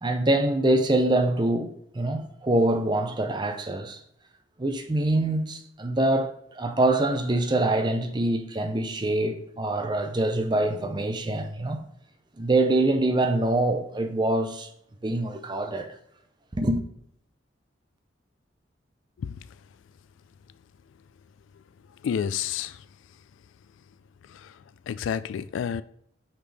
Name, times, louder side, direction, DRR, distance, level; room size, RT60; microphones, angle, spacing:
voice 1, 0.0-4.0 4.6-11.8 12.4-14.7 15.0-15.9 16.5-16.8, right 2 dB, 25° right, 0.6 m, -25 dB
voice 2, 22.0-22.8 24.3-24.5 24.9-25.8, left 8 dB, 80° left, 0.3 m, -29 dB
5.7 x 5.1 x 3.3 m
head